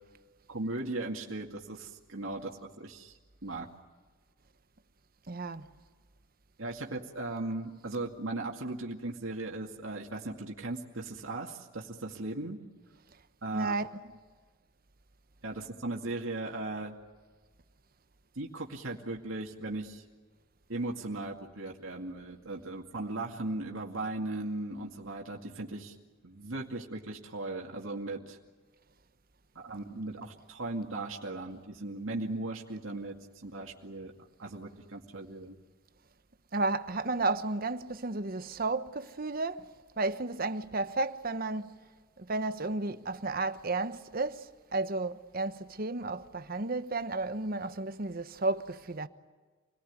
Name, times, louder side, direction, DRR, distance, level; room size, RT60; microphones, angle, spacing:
voice 1, 0.5-3.2 3.4-3.7 6.6-12.6 13.4-13.7 15.4-16.9 18.4-20.0 20.7-25.9 26.2-28.4 29.6-33.1 33.4-34.1 34.4-35.6, right 2 dB, 80° right, 2.3 m, -37 dB
voice 2, 5.3-5.7 13.5-14.0 36.5-41.8 42.2-49.1, right 3 dB, 45° right, 1.0 m, -33 dB
27.5 x 18.5 x 9.6 m
head